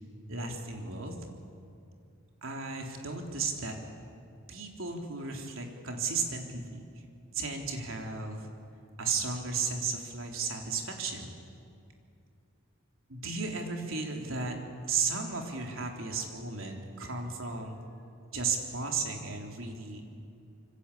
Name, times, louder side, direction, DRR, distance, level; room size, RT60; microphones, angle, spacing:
voice 1, 0.3-1.1 2.4-3.7 4.5-6.8 7.3-8.4 9.0-11.3 13.1-14.5 14.9-17.7 18.3-20.0, right 4 dB, 65° right, 2 dB, 3.7 m, -34 dB
26.5 x 24.0 x 8.6 m, 2.5 s
head